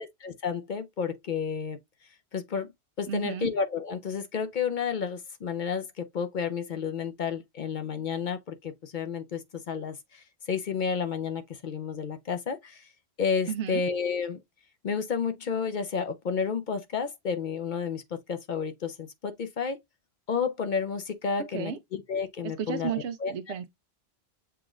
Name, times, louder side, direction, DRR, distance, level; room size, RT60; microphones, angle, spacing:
voice 1, 0.0-1.8 2.3-2.7 3.0-12.9 13.2-14.4 14.8-18.0 18.3-19.8 20.3-23.3, left 6 dB, 55° left, 0.6 m, -31 dB
voice 2, 3.1-3.5 13.5-13.8 21.5-21.8 22.6-23.7, right 8 dB, 85° right, 1.0 m, -33 dB
7.0 x 2.4 x 3.0 m
omnidirectional pair, 1.1 m